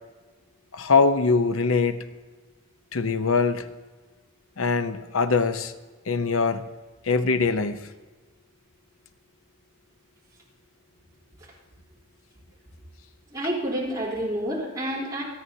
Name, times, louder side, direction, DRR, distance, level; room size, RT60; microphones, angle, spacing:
voice 1, 0.7-2.0 2.9-3.6 4.6-5.7 6.1-6.6 7.0-7.8, left 4 dB, 80° left, 10 dB, 0.8 m, -22 dB
voice 2, 13.3-15.2, right 1 dB, 15° right, -6 dB, 3.5 m, -28 dB
27.5 x 9.5 x 2.8 m, 1.3 s
head